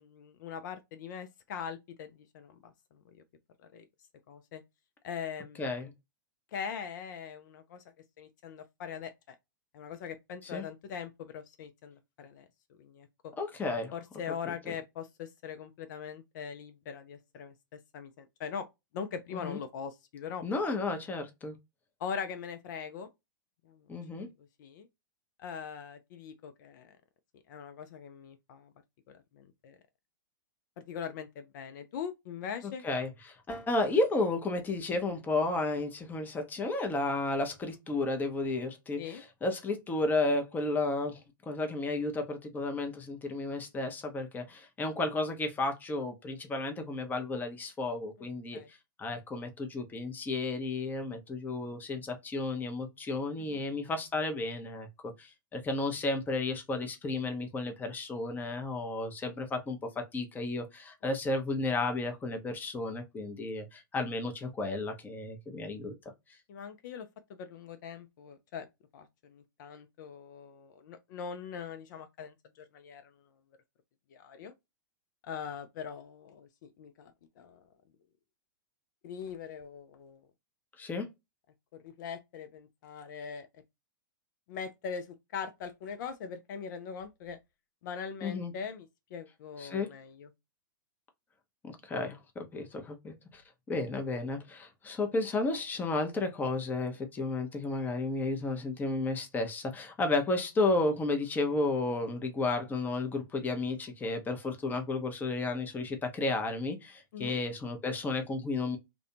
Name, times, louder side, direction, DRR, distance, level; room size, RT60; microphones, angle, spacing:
voice 1, 0.0-3.2 3.6-3.9 4.3-4.6 5.0-5.8 6.5-7.8 8.2-9.4 9.7-13.3 13.9-18.6 18.9-20.4 22.0-23.1 23.6-23.9 24.1-24.3 24.6-24.9 25.4-26.9 27.5-28.7 29.1-29.8 30.8-32.8 39.0-39.2 48.5-48.7 53.4-53.6 66.5-68.7 68.9-73.1 74.1-74.5 75.2-77.6 79.0-80.2 81.8-83.5 84.5-87.4 87.8-90.3 107.1-107.4, left 7 dB, 60° left, 0.4 m, -42 dB
voice 2, 5.6-5.9 10.5-10.6 13.4-13.9 14.5-14.7 19.3-19.6 20.4-21.6 23.9-24.3 32.8-41.2 41.5-65.9 80.8-81.1 88.2-88.5 89.6-89.9 91.6-93.4 93.7-108.8, left 2 dB, 15° left, 0.7 m, -33 dB
2.4 x 2.2 x 2.6 m
hypercardioid pair, 110°, 11 cm